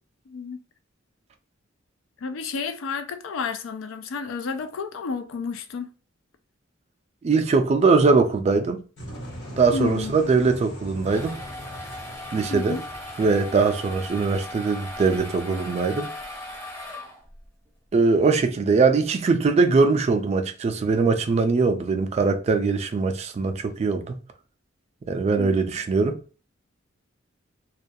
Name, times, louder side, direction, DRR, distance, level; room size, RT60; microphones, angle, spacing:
voice 1, 0.3-0.6 2.2-5.9 9.7-10.1 12.5-12.9 25.3-25.6, left 5 dB, 90° left, 0.4 m, -31 dB
voice 2, 7.2-8.8 9.6-11.4 12.3-12.7 13.2-16.1 17.9-24.2 25.1-26.2, right 4 dB, 35° right, 0.3 m, -21 dB
sound 1, 9.0-14.8, equal, 60° left, 1.1 m, -41 dB
sound 2, 10.8-17.5, left 1 dB, 15° left, 0.6 m, -38 dB
2.3 x 2.2 x 2.6 m
head